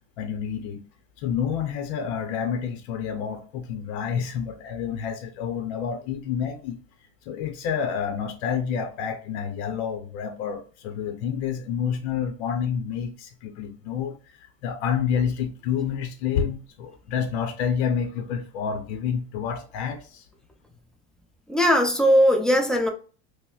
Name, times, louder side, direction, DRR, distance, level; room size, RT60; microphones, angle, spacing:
voice 1, 0.2-0.8 1.2-6.8 7.3-20.3, left 7 dB, 75° left, 0.7 m, -29 dB
voice 2, 21.5-22.9, equal, ahead, 0.6 m, -19 dB
5.3 x 2.1 x 2.3 m
supercardioid pair, 120°, 33 cm